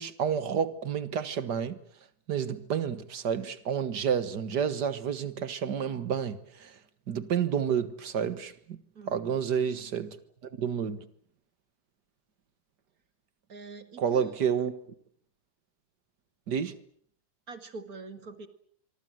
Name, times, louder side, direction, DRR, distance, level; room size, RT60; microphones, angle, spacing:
voice 1, 0.0-1.8 2.3-6.8 7.1-8.8 9.1-10.2 10.4-11.1 14.0-14.7 16.5-16.8, right 7 dB, 75° right, 2.1 m, -30 dB
voice 2, 9.0-9.7 13.5-14.4 17.5-18.5, right 3 dB, 55° right, 2.5 m, -45 dB
25.5 x 24.0 x 7.7 m
omnidirectional pair, 1.8 m